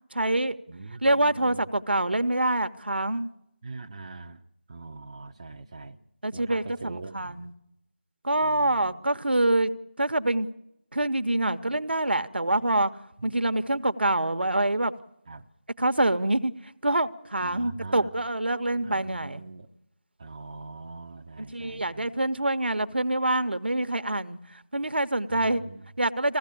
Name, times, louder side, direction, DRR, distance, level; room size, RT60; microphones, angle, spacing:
voice 1, 0.1-0.6 1.0-3.3 6.2-7.5 8.2-9.7 10.0-10.5 10.9-12.9 13.2-14.9 15.8-16.5 16.8-19.4 21.4-25.6 26.0-26.4, right 1 dB, 75° right, 1.0 m, -26 dB
voice 2, 0.7-1.7 3.6-4.4 4.7-6.0 6.3-7.5 8.4-9.0 13.2-13.6 15.3-15.4 17.4-18.1 18.8-19.7 20.2-22.1 25.3-25.9, right 3 dB, 30° right, 0.7 m, -42 dB
21.0 x 16.0 x 8.4 m
figure-of-eight pair, 165°, 6 cm